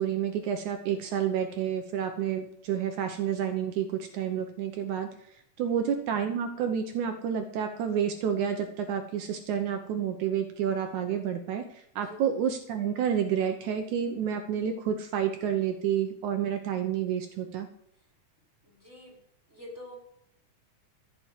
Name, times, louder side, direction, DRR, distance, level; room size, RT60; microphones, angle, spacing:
voice 1, 0.0-5.1 5.6-17.7, right 8 dB, 75° right, 6 dB, 2.3 m, -29 dB
voice 2, 18.6-19.2 19.5-19.9, left 1 dB, 5° left, -2 dB, 4.5 m, -47 dB
15.0 x 6.1 x 8.2 m, 0.70 s
omnidirectional pair, 3.6 m